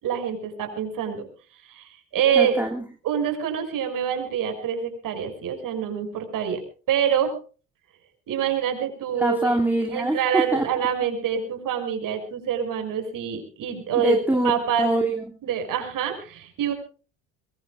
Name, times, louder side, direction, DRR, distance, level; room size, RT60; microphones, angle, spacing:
voice 1, 0.0-1.3 1.7-2.5 3.0-6.6 6.9-7.3 8.3-9.6 9.9-14.2 14.4-14.9 15.4-16.7, right 8 dB, 50° right, 5 dB, 6.1 m, -26 dB
voice 2, 2.3-2.8 9.2-10.6 14.0-15.2, right 1 dB, 5° right, 1 dB, 2.5 m, -24 dB
22.5 x 22.0 x 2.4 m, 0.37 s
hypercardioid pair, 65°, 40 cm